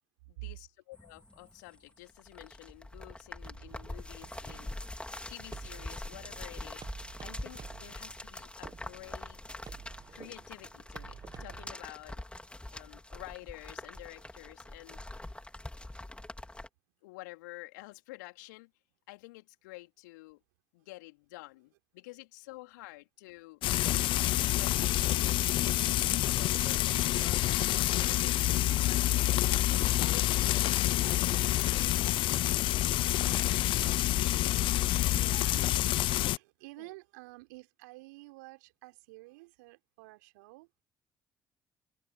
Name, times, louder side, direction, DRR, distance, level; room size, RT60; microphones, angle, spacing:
voice 1, 0.3-4.7 5.3-9.6 10.1-12.2 12.7-15.2 17.0-18.7 19.1-20.4 20.7-23.6 24.2-33.7 36.8-36.9, left 22 dB, 75° left, 3.9 m, -50 dB
sound 1, 0.9-16.7, left 1 dB, 10° left, 3.9 m, -44 dB
sound 2, 3.5-11.7, right 7 dB, 40° right, 1.5 m, -51 dB
Frying (food), 23.6-36.4, left 15 dB, 60° left, 0.5 m, -27 dB
voice 2, 35.1-40.7, right 23 dB, 75° right, 3.6 m, -50 dB
figure-of-eight pair, 45°, 10 cm